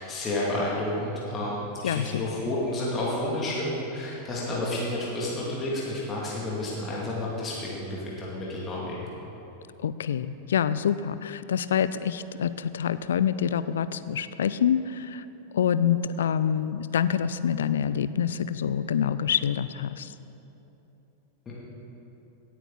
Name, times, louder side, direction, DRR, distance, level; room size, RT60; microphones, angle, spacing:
voice 1, 0.0-9.0, left 1 dB, 25° left, -5 dB, 2.5 m, -30 dB
voice 2, 1.8-2.2 9.8-15.3 15.5-20.1, left 8 dB, 65° left, 14 dB, 0.4 m, -26 dB
17.0 x 9.2 x 4.0 m, 3.0 s
figure-of-eight pair, 90°, 0 cm